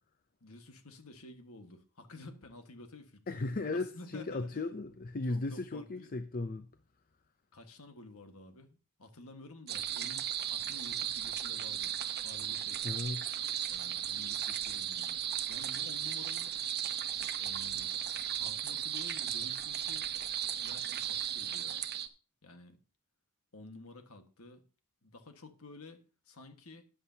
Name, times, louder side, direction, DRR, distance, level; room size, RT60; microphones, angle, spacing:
voice 1, 0.4-4.6 5.3-6.1 7.5-12.9 13.7-15.2 15.5-16.5 17.4-20.1 20.6-21.8 22.4-22.8 23.5-24.6 25.0-26.8, left 2 dB, 70° left, 1.6 m, -52 dB
voice 2, 3.3-6.7 12.8-13.3, left 2 dB, 40° left, 0.6 m, -36 dB
sound 1, 9.7-22.1, right 10 dB, 45° right, 0.8 m, -36 dB
13.5 x 9.8 x 2.8 m
head